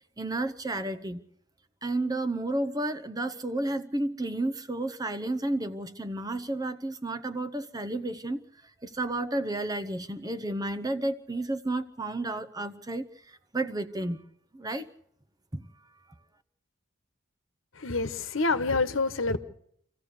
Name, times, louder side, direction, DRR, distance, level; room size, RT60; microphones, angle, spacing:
voice 1, 0.2-1.2 1.8-14.2 14.5-14.9 15.5-15.6, right 2 dB, 20° right, 0.8 m, -32 dB
voice 2, 17.8-19.4, left 3 dB, 75° left, 1.3 m, -27 dB
26.5 x 15.0 x 6.7 m
head